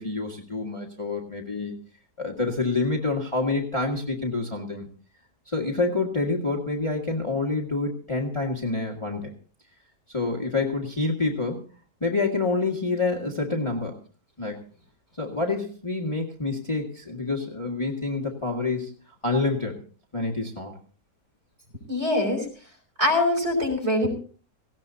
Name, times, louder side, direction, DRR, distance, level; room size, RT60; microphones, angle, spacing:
voice 1, 0.0-1.7 2.2-4.9 5.5-9.3 10.1-11.6 12.0-14.0 14.4-14.6 15.2-18.9 19.2-19.8 20.1-20.7, left 3 dB, 20° left, -1 dB, 1.8 m, -27 dB
voice 2, 21.9-22.5 23.0-24.1, left 1 dB, 40° right, 5 dB, 5.5 m, -23 dB
18.5 x 17.0 x 2.7 m, 0.39 s
omnidirectional pair, 1.8 m